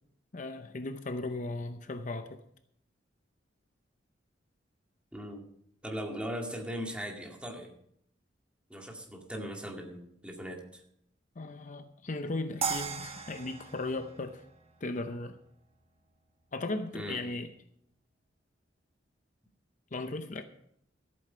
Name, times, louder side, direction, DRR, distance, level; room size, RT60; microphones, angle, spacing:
voice 1, 0.3-2.4 11.4-14.4 14.8-15.4 16.5-17.5 19.9-20.4, left 2 dB, 45° left, 8 dB, 0.7 m, -37 dB
voice 2, 5.1-5.5 5.8-7.7 8.7-10.8 16.9-17.2, equal, 5° right, 0 dB, 2.2 m, -39 dB
sound 1, 12.6-15.7, right 5 dB, 35° right, 1.3 m, -38 dB
14.0 x 8.6 x 5.6 m, 0.72 s
head